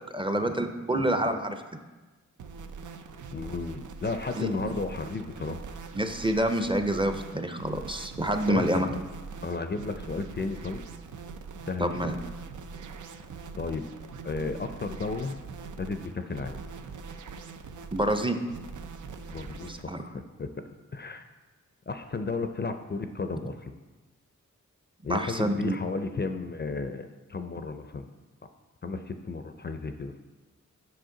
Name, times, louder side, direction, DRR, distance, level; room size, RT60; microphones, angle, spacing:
voice 1, 0.1-1.6 4.4-4.5 5.9-8.9 11.8-12.1 17.9-18.4 19.7-20.0 25.1-25.8, right 1 dB, 15° right, 7 dB, 0.5 m, -27 dB
sound 1, 2.4-19.9, right 5 dB, 80° right, 0.5 m, -43 dB
voice 2, 3.3-5.6 8.5-9.0 9.4-10.8 11.6-12.2 13.6-13.9 14.2-15.4 15.8-16.6 19.3-20.5 20.9-21.3 21.9-23.7 25.0-28.1 28.8-30.2, left 3 dB, 35° left, 8 dB, 0.4 m, -33 dB
7.8 x 5.7 x 3.8 m, 1.2 s
wide cardioid pair, 65°, 30 cm